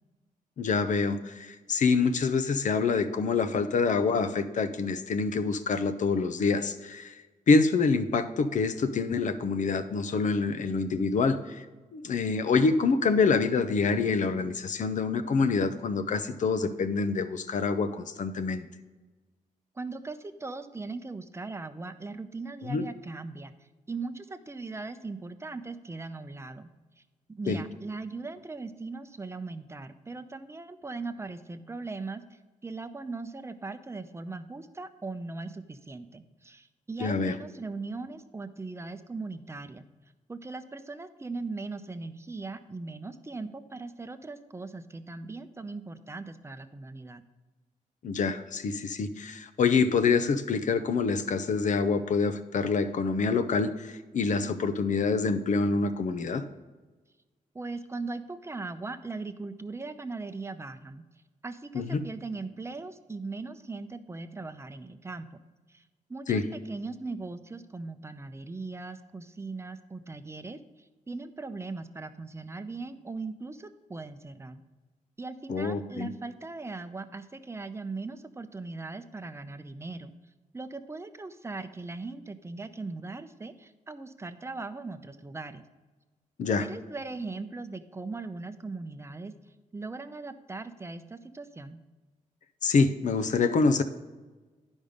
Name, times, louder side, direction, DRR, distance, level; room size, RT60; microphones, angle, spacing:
voice 1, 0.6-7.2 7.5-11.6 11.9-18.7 22.7-22.8 27.5-27.6 37.0-37.4 48.0-56.4 61.7-62.0 66.3-66.4 75.5-76.1 86.4-86.6 92.6-93.8, left 4 dB, 65° left, 11 dB, 0.7 m, -26 dB
voice 2, 19.8-23.5 23.9-26.7 27.3-39.8 40.3-47.2 57.5-61.0 61.4-65.4 65.7-65.8 66.1-70.6 71.1-74.6 75.2-80.1 80.5-85.6 86.6-89.3 89.7-91.8, right 3 dB, 20° right, 10 dB, 0.6 m, -39 dB
10.5 x 5.4 x 5.1 m, 1.2 s
cardioid pair, 105°, 14 cm